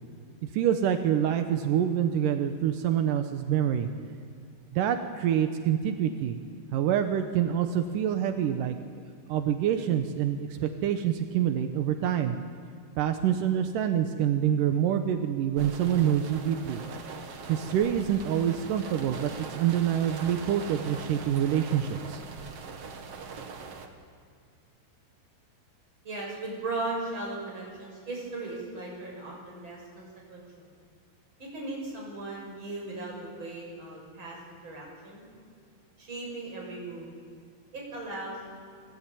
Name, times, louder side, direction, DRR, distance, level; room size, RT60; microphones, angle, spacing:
voice 1, 0.4-3.9 4.7-6.4 6.7-8.8 9.3-12.4 13.0-16.8 17.5-22.2, right 9 dB, 75° right, 6 dB, 2.0 m, -26 dB
sound 1, 15.6-23.9, right 5 dB, 55° right, 1.7 m, -41 dB
voice 2, 26.0-30.7 31.4-35.3 36.0-37.1 37.7-38.4, right 2 dB, 25° right, -2 dB, 7.2 m, -37 dB
28.0 x 19.0 x 9.1 m, 2.3 s
omnidirectional pair, 5.2 m